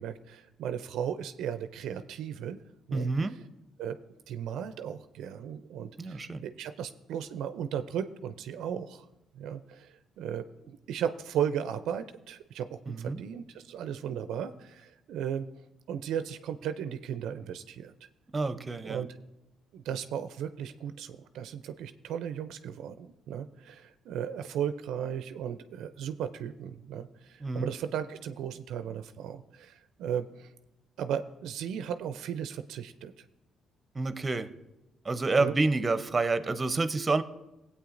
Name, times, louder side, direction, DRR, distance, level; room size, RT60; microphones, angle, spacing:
voice 1, 0.0-2.6 2.9-3.4 3.8-4.0 4.3-9.0 9.4-15.5 15.9-17.9 18.8-19.1 19.7-30.5 31.0-33.2 35.4-35.6, right 9 dB, 75° right, 11 dB, 0.4 m, -36 dB
voice 2, 2.9-3.4 6.0-6.4 12.9-13.2 18.3-19.0 27.4-27.7 33.9-34.5 35.0-37.2, right 3 dB, 30° right, 12 dB, 0.7 m, -28 dB
16.5 x 8.3 x 2.5 m, 0.95 s
supercardioid pair, 65°, 0 cm